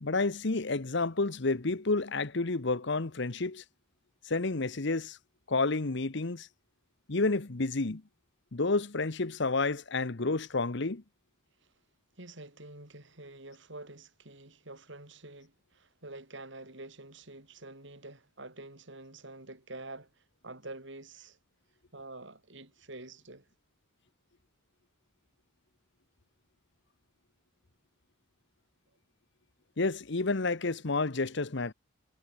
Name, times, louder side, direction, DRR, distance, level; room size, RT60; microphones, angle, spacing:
voice 1, 0.0-3.6 4.3-5.2 5.5-6.5 7.1-8.0 8.5-11.0 29.8-31.7, left 3 dB, 60° left, 1.1 m, -30 dB
voice 2, 12.2-21.4 21.9-23.5, right 2 dB, 65° right, 5.3 m, -47 dB
head